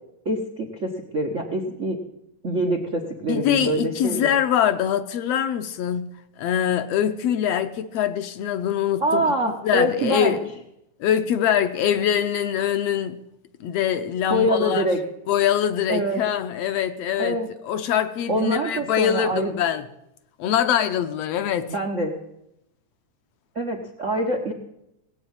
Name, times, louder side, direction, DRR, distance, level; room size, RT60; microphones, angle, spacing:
voice 1, 0.2-2.0 2.4-4.3 9.0-10.3 14.3-15.0 15.9-16.2 17.2-17.5 18.3-19.5 21.7-22.1 23.5-24.5, right 1 dB, 80° right, 0.6 m, -24 dB
voice 2, 3.3-6.1 6.4-10.4 11.0-13.2 13.6-14.9 15.3-19.8 20.4-21.7, left 9 dB, 75° left, 1.6 m, -23 dB
18.5 x 8.3 x 8.8 m
omnidirectional pair, 3.5 m